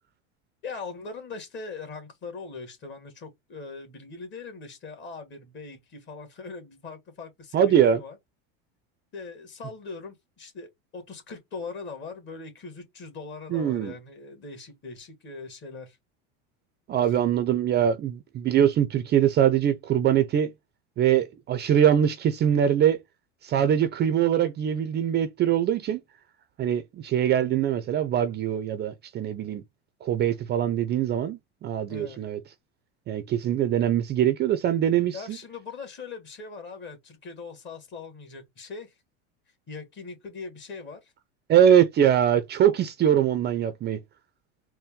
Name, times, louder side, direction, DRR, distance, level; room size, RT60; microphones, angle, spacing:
voice 1, 0.6-8.2 9.1-16.0 31.9-32.2 35.1-39.0 39.7-41.1, left 4 dB, 35° left, 1.9 m, -40 dB
voice 2, 7.5-8.0 13.5-13.9 16.9-20.5 21.0-23.0 23.4-26.0 26.6-29.6 30.0-32.4 33.1-35.4 41.5-44.0, right 9 dB, 30° right, 0.5 m, -23 dB
4.2 x 2.2 x 3.6 m
supercardioid pair, 120°, 33 cm